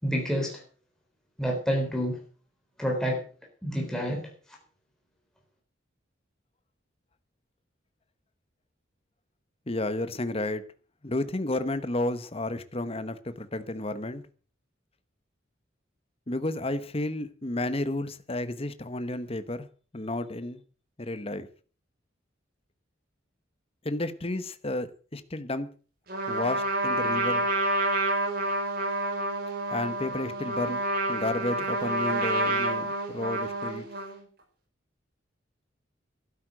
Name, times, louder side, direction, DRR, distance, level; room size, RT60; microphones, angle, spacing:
voice 1, 0.0-0.6 1.4-2.2 2.8-3.2 3.6-4.3, equal, 5° left, 0 dB, 3.7 m, -28 dB
voice 2, 9.7-10.6 11.0-14.2 16.3-19.7 19.9-20.6 21.0-21.5 23.8-25.7 26.3-27.5 29.7-33.9, left 2 dB, 30° left, 12 dB, 1.1 m, -32 dB
Trumpet, 26.1-34.2, right 1 dB, 55° right, 5.2 m, -28 dB
12.5 x 9.7 x 7.7 m, 0.39 s
head